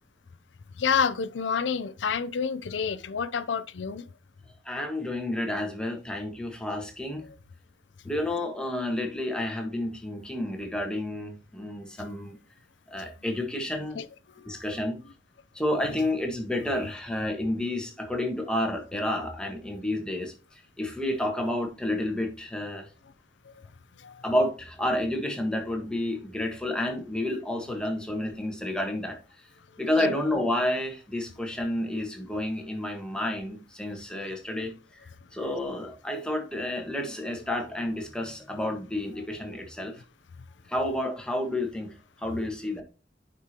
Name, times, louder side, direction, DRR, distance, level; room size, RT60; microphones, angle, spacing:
voice 1, 0.8-4.1 14.0-14.1 14.4-14.6 24.0-24.2 30.0-30.1, left 6 dB, 90° left, 0.5 m, -28 dB
voice 2, 4.6-7.3 8.0-12.4 12.9-14.0 14.4-15.0 15.5-22.9 24.2-29.2 29.8-34.7 35.3-40.0 40.7-42.8, left 1 dB, 5° left, 1.5 m, -30 dB
9.4 x 4.9 x 2.9 m
head